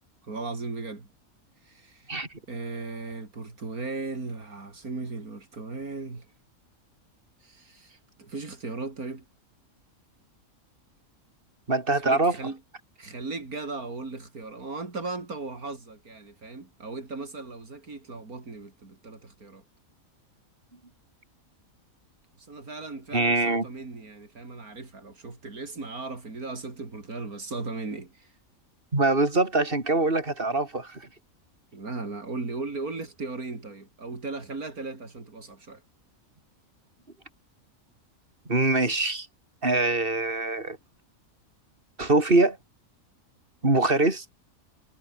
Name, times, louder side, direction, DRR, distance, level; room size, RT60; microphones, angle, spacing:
voice 1, 0.2-1.1 1.6-2.1 2.5-6.3 7.4-9.2 11.9-12.6 13.0-19.6 22.4-28.3 31.7-35.8, right 3 dB, 90° right, 4.3 m, -37 dB
voice 2, 11.7-12.3 23.1-23.7 28.9-31.1 38.5-39.3 39.6-40.8 42.0-42.6 43.6-44.2, right 2 dB, 40° right, 4.5 m, -23 dB
omnidirectional pair, 1.5 m